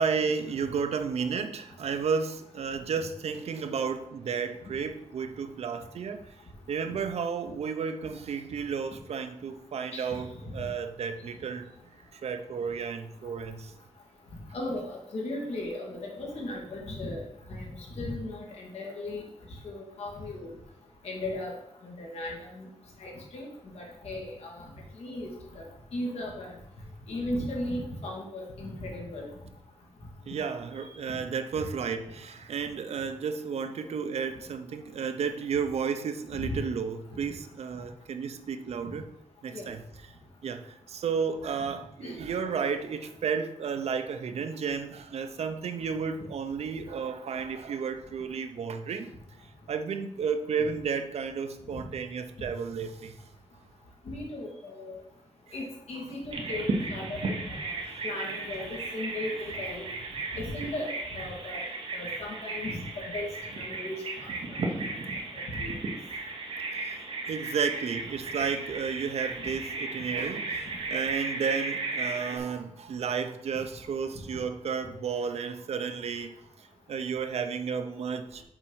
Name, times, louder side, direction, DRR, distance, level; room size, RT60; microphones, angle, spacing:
voice 1, 0.0-6.2 6.7-11.7 12.1-13.7 30.3-39.1 39.4-39.8 40.4-49.1 49.7-53.2 57.9-58.0 66.8-67.0 67.3-76.3 76.9-78.4, right 6 dB, 75° right, 0.7 m, -32 dB
voice 2, 9.9-10.2 14.5-17.2 17.5-19.3 19.6-20.5 21.0-21.5 21.8-22.7 23.0-23.5 23.7-24.6 25.0-26.5 27.1-29.3 36.4-36.6 37.1-37.2 38.8-38.9 39.5-39.7 42.0-42.2 54.0-55.0 55.5-57.6 58.0-59.9 60.3-61.6 61.9-63.3 63.6-64.3 65.6-65.7, left 1 dB, 70° left, 2.3 m, -36 dB
Bird vocalization bird call bird song, 56.3-72.4, right 3 dB, 55° right, 1.2 m, -35 dB
7.1 x 4.3 x 5.6 m
wide cardioid pair, 180°, 11 cm